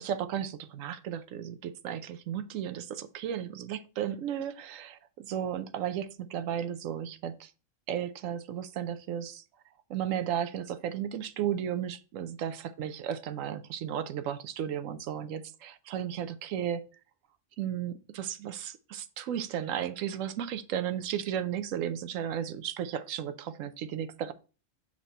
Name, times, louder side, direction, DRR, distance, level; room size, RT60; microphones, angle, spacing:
voice 1, 0.0-7.5 7.9-9.4 9.9-16.9 17.6-24.3, right 9 dB, 90° right, 1.0 m, -34 dB
7.3 x 4.1 x 4.2 m
omnidirectional pair, 1.3 m